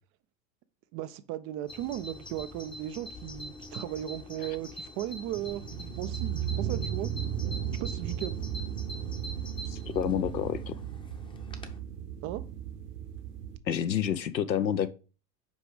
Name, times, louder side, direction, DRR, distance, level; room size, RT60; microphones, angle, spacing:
voice 1, 0.9-5.6 6.0-7.1 7.8-8.3 12.2-12.4, right 13 dB, 30° right, 0.4 m, -36 dB
Bird vocalization bird call bird song, 1.7-11.8, left 1 dB, 10° left, 0.7 m, -45 dB
sound 1, 5.3-13.6, right 9 dB, 65° right, 1.2 m, -35 dB
voice 2, 9.7-10.7 13.7-14.9, left 9 dB, 90° left, 0.7 m, -29 dB
5.3 x 4.8 x 4.8 m
hypercardioid pair, 85°, 50 cm